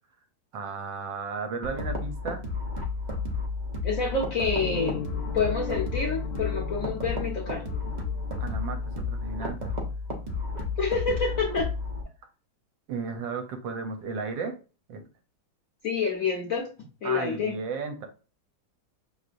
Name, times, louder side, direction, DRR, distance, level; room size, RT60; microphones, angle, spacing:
voice 1, 0.5-2.4 8.4-9.7 12.9-14.5 14.9-15.1 17.0-18.1, right 5 dB, 70° right, 5 dB, 1.4 m, -34 dB
sound 1, 1.6-12.0, left 3 dB, 90° right, 0.4 m, -32 dB
voice 2, 3.8-5.0 5.3-7.6 10.8-11.7 15.8-16.7 17.0-17.5, left 4 dB, 60° left, -1 dB, 0.9 m, -28 dB
sound 2, 4.6-9.4, left 10 dB, 80° left, 1.5 m, -38 dB
5.6 x 3.2 x 2.5 m, 0.34 s
omnidirectional pair, 2.3 m